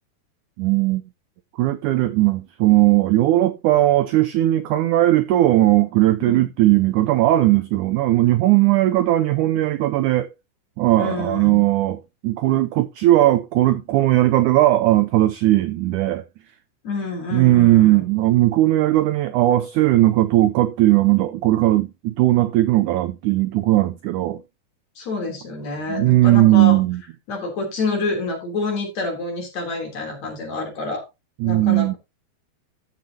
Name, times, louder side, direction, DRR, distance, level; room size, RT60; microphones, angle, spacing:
voice 1, 0.6-1.0 1.6-10.3 10.8-16.2 17.3-24.4 25.9-27.0 31.4-31.9, right 15 dB, 85° right, 1.8 m, -18 dB
voice 2, 11.0-11.6 16.8-18.0 25.0-26.8 27.3-31.0 31.4-32.0, left 3 dB, 50° left, 4.4 m, -28 dB
14.0 x 6.9 x 2.9 m
omnidirectional pair, 4.2 m